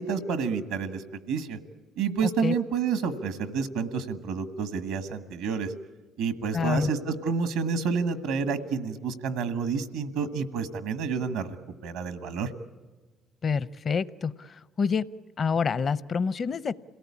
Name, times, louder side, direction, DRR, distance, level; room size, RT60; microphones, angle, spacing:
voice 1, 0.0-1.6 2.0-5.7 6.2-11.5 11.8-12.5, right 5 dB, 90° right, 11 dB, 1.5 m, -29 dB
voice 2, 2.2-2.5 6.5-6.9 13.4-15.1 15.4-16.7, left 5 dB, 50° left, 17 dB, 0.7 m, -27 dB
27.0 x 18.0 x 8.6 m, 1.3 s
supercardioid pair, 60°, 0 cm